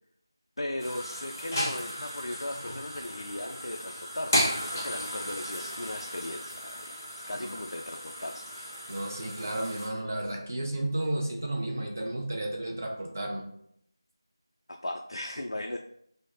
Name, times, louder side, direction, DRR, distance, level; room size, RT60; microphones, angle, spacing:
voice 1, 0.6-8.4 14.7-15.8, left 1 dB, 85° left, 3 dB, 0.3 m, -37 dB
sound 1, 0.8-9.9, equal, 25° left, 1.0 m, -35 dB
voice 2, 8.9-13.5, right 1 dB, 35° right, 2 dB, 0.5 m, -32 dB
4.7 x 2.1 x 2.4 m, 0.72 s
figure-of-eight pair, 175°, 2 cm